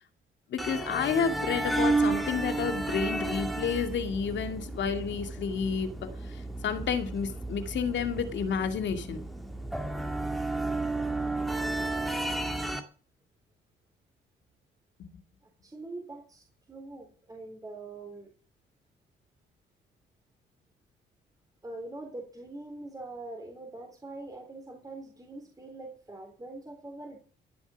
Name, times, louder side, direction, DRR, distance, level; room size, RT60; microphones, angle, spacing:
voice 1, 0.5-5.9 6.2-9.2, left 6 dB, 65° left, 2.3 m, -30 dB
sound 1, 0.6-12.8, right 2 dB, ahead, 2.0 m, -32 dB
voice 2, 15.6-18.3 21.6-27.2, right 2 dB, 20° right, 3.6 m, -43 dB
14.5 x 7.2 x 7.2 m
cardioid pair, 90°, 20 cm